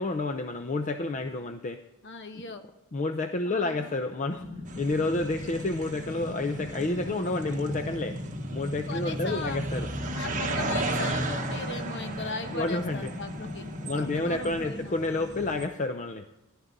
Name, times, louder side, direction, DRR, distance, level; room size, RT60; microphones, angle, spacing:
voice 1, 0.0-1.8 2.9-4.5 4.8-8.2 8.5-9.9 12.5-13.1 13.8-16.3, left 2 dB, 35° left, 7 dB, 0.5 m, -30 dB
voice 2, 2.0-2.6 3.4-4.0 8.9-9.6 10.1-13.7 13.9-15.0, left 3 dB, 55° left, 7 dB, 1.1 m, -38 dB
sound 1, 4.3-14.7, left 1 dB, 80° left, 4.6 m, -40 dB
sound 2, 4.7-15.7, right 2 dB, 35° right, 1.2 m, -35 dB
14.5 x 11.0 x 4.0 m, 0.97 s
head